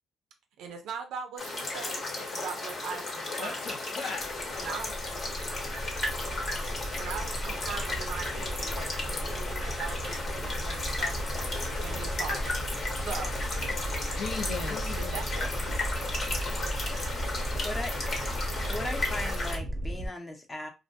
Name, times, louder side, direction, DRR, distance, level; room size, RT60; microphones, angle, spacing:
voice 1, 0.6-3.7 4.6-5.0 7.0-12.6 13.0-13.8 14.9-16.0, right 6 dB, 85° right, 0.4 m, -41 dB
sound 1, 1.4-19.6, left 2 dB, 50° left, 1.0 m, -34 dB
voice 2, 3.4-4.7 14.1-15.3, left 4 dB, 70° left, 0.4 m, -37 dB
sound 2, 4.2-20.1, right 1 dB, 10° right, 0.7 m, -35 dB
voice 3, 17.6-17.9 18.7-20.7, left 2 dB, 25° left, 0.7 m, -37 dB
2.3 x 2.2 x 2.6 m
cardioid pair, 90°, 0 cm